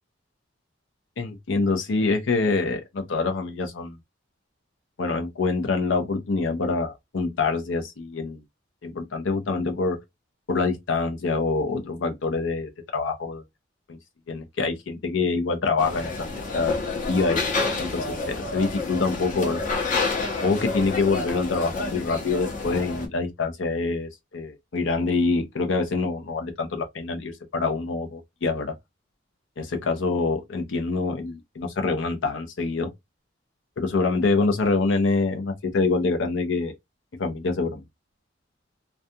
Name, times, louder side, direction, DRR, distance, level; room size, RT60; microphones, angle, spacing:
voice 1, 1.2-4.0 5.0-8.4 8.8-10.0 10.5-13.4 13.9-14.0 14.3-16.1 16.5-16.7 17.1-17.4 17.8-19.6 20.4-28.7 29.6-32.9 33.8-36.7 37.2-37.8, left 3 dB, 75° left, 0.6 m, -25 dB
sound 1, 15.8-23.1, left 3 dB, 45° left, 0.7 m, -29 dB
2.3 x 2.3 x 2.7 m
head